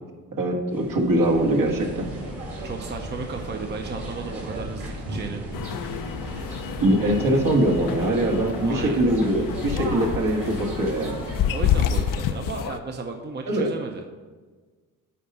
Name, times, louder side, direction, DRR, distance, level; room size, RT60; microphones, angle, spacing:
voice 1, 0.4-2.1 6.8-11.2 13.5-13.7, right 1 dB, 60° right, 1 dB, 1.6 m, -22 dB
sound 1, 0.7-12.1, right 1 dB, 85° right, 2.0 m, -35 dB
voice 2, 2.6-5.4 8.6-9.0 11.5-14.0, right 4 dB, 30° right, 4 dB, 0.8 m, -34 dB
sound 2, 5.5-12.8, left 9 dB, 60° left, 0.5 m, -29 dB
8.5 x 4.2 x 5.5 m, 1.4 s
supercardioid pair, 70°, 37 cm